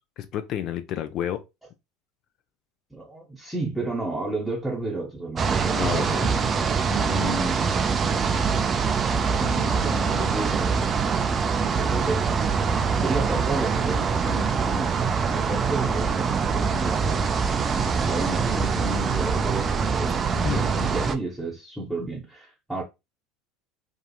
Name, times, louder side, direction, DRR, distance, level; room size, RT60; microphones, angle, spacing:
voice 1, 0.2-1.4 5.8-6.3 20.4-20.7, left 10 dB, 50° left, 0.4 m, -30 dB
voice 2, 2.9-6.3 6.8-7.8 9.4-10.8 11.6-12.4 12.9-15.0 15.3-20.4 20.8-22.8, right 2 dB, ahead, 0.8 m, -32 dB
sound 1, 5.4-21.2, right 5 dB, 30° right, 0.4 m, -24 dB
2.8 x 2.4 x 2.3 m
hypercardioid pair, 80°, 0 cm